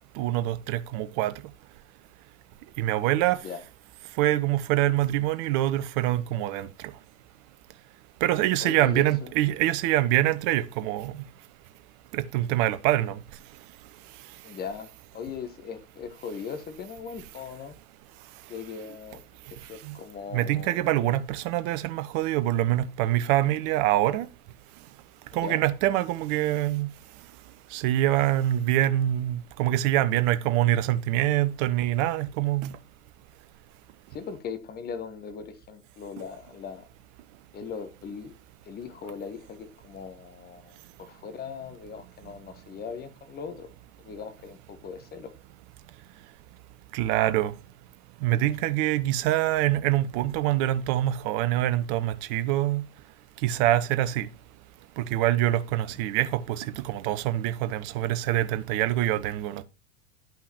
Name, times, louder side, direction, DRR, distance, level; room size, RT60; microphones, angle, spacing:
voice 1, 0.2-1.3 2.8-3.4 4.2-6.7 8.2-11.1 12.1-13.2 19.8-20.0 20.3-24.3 25.3-26.9 27.7-32.7 46.9-47.5 48.2-52.9 53.4-54.3 55.0-59.6, right 14 dB, 40° right, 0.8 m, -25 dB
voice 2, 3.3-3.6 8.6-9.3 14.4-17.8 18.5-19.2 19.5-21.0 25.3-25.6 34.1-36.9 37.5-38.3 38.6-43.7 44.0-45.3, left 6 dB, 25° left, 1.2 m, -39 dB
10.5 x 5.6 x 3.0 m
figure-of-eight pair, 90°, 40 cm